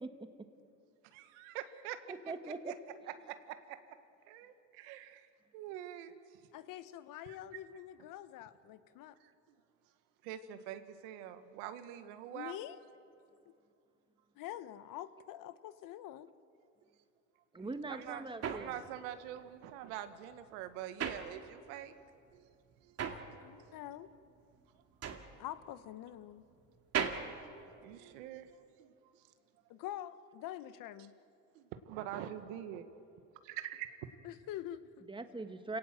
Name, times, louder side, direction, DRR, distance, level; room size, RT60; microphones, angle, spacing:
voice 1, 1.1-2.7 3.0-3.8 4.3-5.3 5.5-6.4 7.3-7.4 9.2-9.3 10.2-12.6 17.9-21.9 22.3-22.4 22.8-23.0 23.6-23.7 27.8-29.2 31.5-32.9 33.4-33.9, right 11 dB, 85° right, 9 dB, 1.6 m, -45 dB
voice 2, 2.1-2.6 17.5-18.8 35.1-35.8, right 3 dB, 15° right, 7 dB, 1.8 m, -41 dB
voice 3, 6.5-9.2 12.3-12.8 14.4-16.3 23.1-24.1 25.4-26.4 29.7-31.1 34.2-35.1, left 12 dB, 65° left, 13 dB, 1.2 m, -46 dB
sound 1, 17.6-21.9 22.2-28.5, right 7 dB, 45° right, 2.4 m, -41 dB
28.5 x 18.0 x 7.6 m, 2.5 s
supercardioid pair, 100°, 35 cm